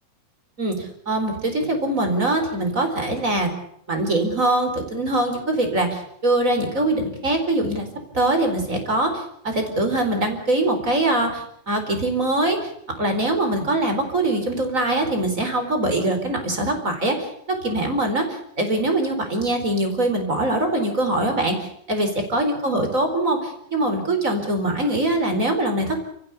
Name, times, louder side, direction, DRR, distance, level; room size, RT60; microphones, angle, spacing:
voice 1, 0.6-3.5 3.9-7.9 8.1-26.0, right 1 dB, 20° right, 5 dB, 4.5 m, -23 dB
29.0 x 15.0 x 8.2 m, 0.68 s
omnidirectional pair, 4.2 m